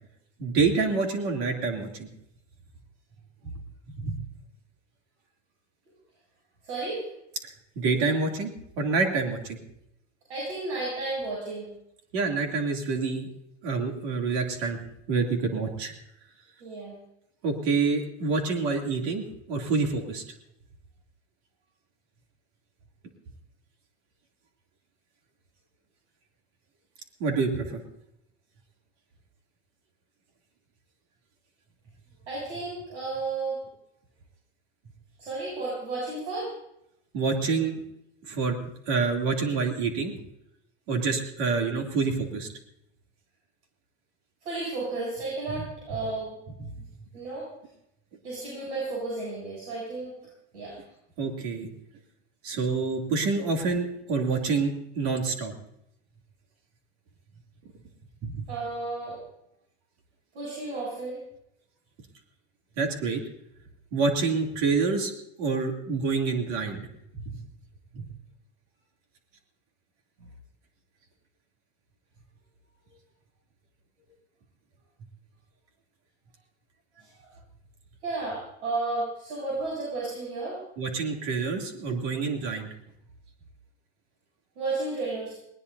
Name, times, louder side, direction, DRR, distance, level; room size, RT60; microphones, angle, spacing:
voice 1, 0.4-2.1 4.0-4.2 7.7-9.6 12.1-13.3 13.6-14.8 15.1-15.9 17.4-19.2 19.5-20.2 27.2-27.8 37.1-37.8 38.3-40.1 40.9-42.5 46.6-46.7 51.2-51.7 52.4-55.5 58.2-58.4 62.8-63.2 63.9-65.1 65.4-66.9 67.2-67.4 67.9-68.1 80.8-82.7, right 4 dB, 65° right, 2 dB, 2.9 m, -27 dB
voice 2, 6.6-7.0 10.3-11.7 16.6-16.9 32.3-33.6 35.2-36.5 44.4-46.4 47.1-47.5 48.2-50.1 50.5-50.7 58.5-59.2 60.3-61.2 78.0-80.6 84.6-85.3, right 3 dB, 80° right, -6 dB, 7.8 m, -32 dB
19.5 x 19.5 x 2.7 m, 0.81 s
supercardioid pair, 125°, 34 cm